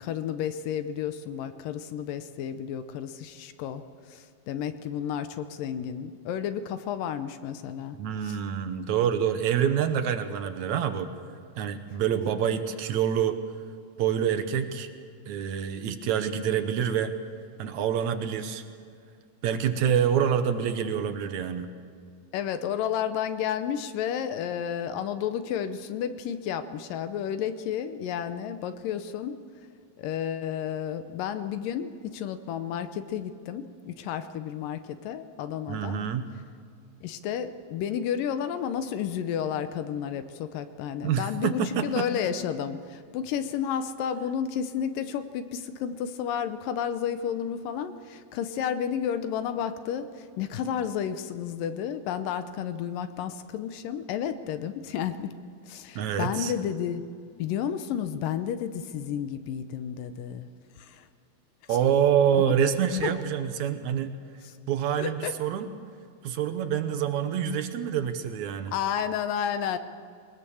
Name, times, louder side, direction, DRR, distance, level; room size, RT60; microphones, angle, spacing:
voice 1, 0.0-3.8 4.1-8.0 8.2-8.4 19.8-19.9 22.3-29.4 30.0-36.0 37.0-55.4 55.6-57.0 57.4-60.5 60.8-61.1 63.0-63.1 65.0-65.3 68.7-69.8, left 8 dB, 75° left, 10 dB, 2.4 m, -31 dB
voice 2, 8.0-11.1 11.6-13.4 14.0-14.9 15.3-17.1 17.6-18.6 19.4-21.7 35.7-36.3 41.0-42.1 56.0-56.5 61.7-64.1 64.7-65.7 66.2-68.8, right 8 dB, 70° right, 9 dB, 1.9 m, -26 dB
21.5 x 20.5 x 7.0 m, 2.3 s
omnidirectional pair, 4.1 m